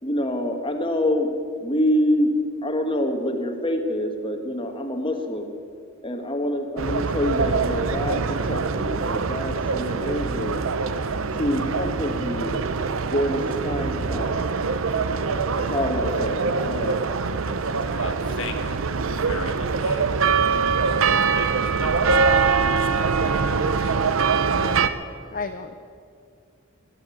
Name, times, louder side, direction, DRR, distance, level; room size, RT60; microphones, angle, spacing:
voice 1, 0.0-1.3 1.6-2.4 2.6-5.5 6.0-10.6 11.4-12.6 13.0-14.5 15.5-17.0, equal, 25° left, 5 dB, 1.3 m, -26 dB
sound 1, 6.8-24.9, right 5 dB, 75° right, 0.7 m, -23 dB
voice 2, 18.0-22.2 22.7-24.0, left 3 dB, 70° left, 6 dB, 1.4 m, -39 dB
voice 3, 24.5-24.9 25.3-25.8, left 4 dB, 40° left, 7 dB, 0.6 m, -33 dB
18.5 x 7.7 x 9.5 m, 2.3 s
head